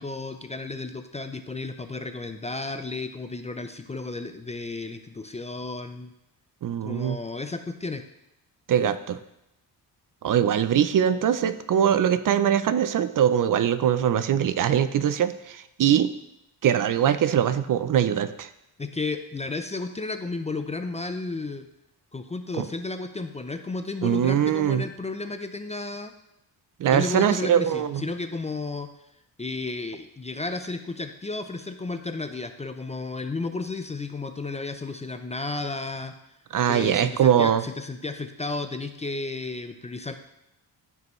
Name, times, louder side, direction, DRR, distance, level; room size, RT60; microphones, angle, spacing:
voice 1, 0.0-6.1 6.8-8.0 18.8-21.7 22.1-26.1 26.9-28.9 29.4-36.1 36.7-40.1, left 3 dB, 20° left, 7 dB, 0.4 m, -33 dB
voice 2, 6.6-7.2 8.7-9.2 10.2-16.1 16.6-18.5 22.6-22.7 24.0-24.9 26.8-28.1 36.5-37.6, right 9 dB, 55° right, 12 dB, 0.5 m, -22 dB
13.5 x 5.4 x 3.1 m, 0.85 s
cardioid pair, 115°, 39 cm